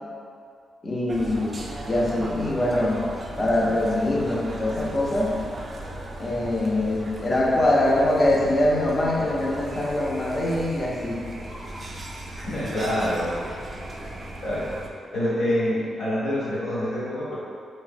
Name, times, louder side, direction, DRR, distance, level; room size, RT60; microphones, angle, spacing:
voice 1, 0.8-1.6 1.9-3.0 3.4-5.4 6.2-11.2, left 1 dB, 35° left, -3 dB, 0.6 m, -23 dB
sound 1, 1.1-14.9, right 1 dB, 45° right, 0.3 m, -37 dB
voice 2, 12.4-13.3 14.4-14.6 15.1-17.4, equal, 70° left, -10 dB, 1.1 m, -26 dB
3.0 x 2.1 x 2.5 m, 2.3 s
supercardioid pair, 55°, 0 cm